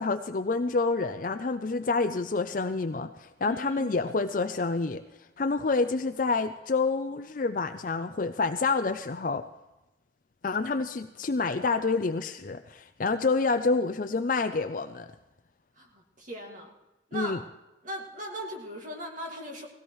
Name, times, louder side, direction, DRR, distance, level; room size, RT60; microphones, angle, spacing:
voice 1, 0.0-5.0 5.4-9.4 10.4-15.1 17.1-17.4, left 3 dB, 45° left, 8 dB, 0.5 m, -28 dB
voice 2, 3.4-3.9 15.8-16.7 17.1-17.4 17.8-19.7, right 1 dB, 45° right, 0 dB, 2.3 m, -39 dB
19.0 x 16.5 x 3.2 m, 1.0 s
head